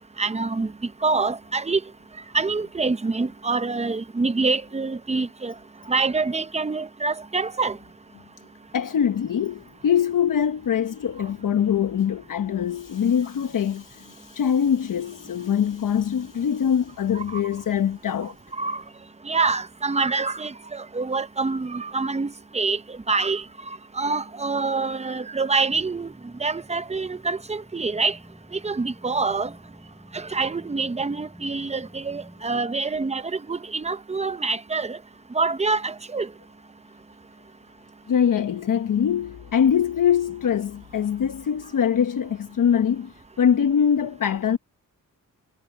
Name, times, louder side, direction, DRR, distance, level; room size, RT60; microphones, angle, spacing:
voice 1, 0.2-1.8 2.3-5.5 5.9-7.8 17.1-17.4 18.6-18.8 19.2-26.1 26.4-28.2 28.5-29.5 30.1-35.0 35.3-36.3, right 4 dB, 20° right, 0.7 m, -26 dB
voice 2, 8.7-18.4 38.1-44.6, left 8 dB, 65° left, 1.0 m, -23 dB
sound 1, 25.7-32.5, equal, ahead, 3.3 m, -49 dB
wide cardioid pair, 125°, 35 cm